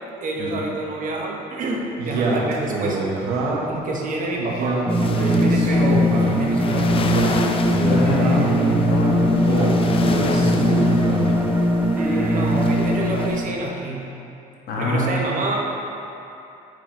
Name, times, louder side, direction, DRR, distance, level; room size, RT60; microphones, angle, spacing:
voice 1, 0.2-3.0 3.3-3.4 3.7-7.0 8.0-8.8 11.9-14.1 14.8-15.7, right 2 dB, 50° right, -1 dB, 1.0 m, -28 dB
Male speech man speaking, 2.0-3.8 4.4-6.4 6.9-8.6 9.3-11.3, right 3 dB, 85° right, 1.0 m, -26 dB
sound 1, 4.9-13.4, left 5 dB, 35° left, 0.4 m, -33 dB
sound 2, 4.9-13.3, left 1 dB, 10° right, 0.6 m, -20 dB
voice 2, 7.8-11.0 14.7-15.2, left 1 dB, 65° left, -3 dB, 1.3 m, -26 dB
7.1 x 6.0 x 3.0 m, 2.8 s
cardioid pair, 110°, 17 cm